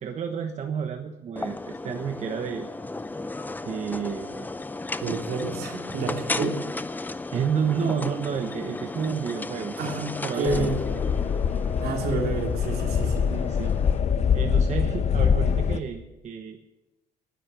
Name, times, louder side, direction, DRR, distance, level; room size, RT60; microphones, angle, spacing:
voice 1, 0.0-2.7 3.6-4.5 7.3-9.7 10.2-10.7 13.3-13.8 14.1-16.7, right 7 dB, 45° right, 5 dB, 1.1 m, -30 dB
sound 1, 1.4-14.0, left 2 dB, 10° left, 0.6 m, -35 dB
voice 2, 5.0-6.6 9.8-10.9 11.8-13.3, right 3 dB, 70° right, 2 dB, 2.9 m, -29 dB
sound 2, 10.5-15.8, left 7 dB, 40° left, 0.9 m, -24 dB
11.0 x 10.5 x 8.4 m, 1.0 s
cardioid pair, 110°, 17 cm